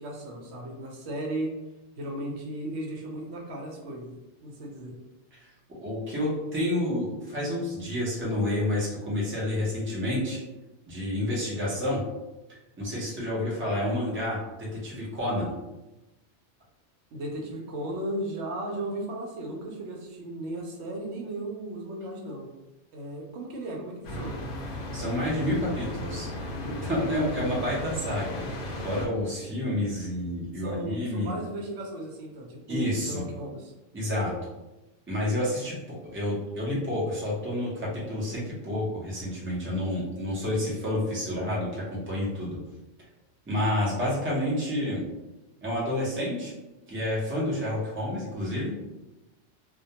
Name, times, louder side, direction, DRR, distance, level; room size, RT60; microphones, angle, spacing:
voice 1, 0.0-1.5 2.0-5.0 17.1-22.5 22.9-24.4 30.6-33.7, right 1 dB, 75° right, 0 dB, 0.9 m, -35 dB
voice 2, 5.7-10.4 10.9-12.0 12.5-15.5 24.9-26.3 26.6-28.4 28.8-31.3 32.7-33.2 33.9-34.3 35.1-35.8 36.0-42.6 43.5-45.0 45.6-46.5 46.9-48.8, left 1 dB, 15° right, -6 dB, 0.5 m, -29 dB
sound 1, 24.0-29.1, left 1 dB, 70° left, 0.8 m, -35 dB
2.2 x 2.1 x 2.8 m, 1.0 s
omnidirectional pair, 1.2 m